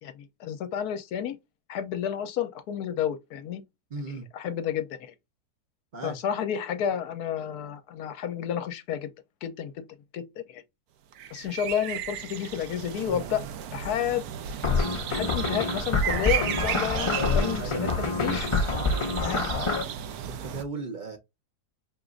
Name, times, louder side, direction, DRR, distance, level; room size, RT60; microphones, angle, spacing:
voice 1, 0.0-1.4 1.7-3.6 4.1-5.1 6.0-9.1 9.4-9.9 10.1-10.6 11.3-13.5 13.7-14.2 15.1-18.5 19.2-19.4, left 9 dB, 70° left, 1.2 m, -31 dB
voice 2, 3.9-4.3 5.9-6.2 13.1-13.3 17.1-18.0 20.4-21.2, right 4 dB, 40° right, 0.7 m, -36 dB
sound 1, 11.1-20.6, right 9 dB, 70° right, 1.1 m, -34 dB
sound 2, 14.6-19.8, left 3 dB, 40° left, 0.4 m, -27 dB
4.9 x 3.0 x 2.4 m
omnidirectional pair, 1.8 m